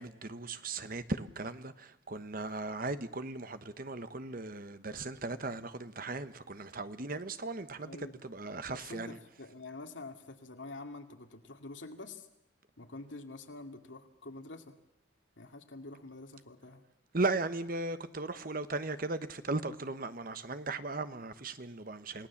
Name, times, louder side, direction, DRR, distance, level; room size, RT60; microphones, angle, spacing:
voice 1, 0.0-9.2 17.1-22.3, right 3 dB, 45° right, 1.1 m, -37 dB
voice 2, 7.8-8.2 8.5-12.3 12.8-14.7 15.4-16.8, left 2 dB, 80° left, 2.3 m, -47 dB
28.5 x 17.5 x 7.3 m
head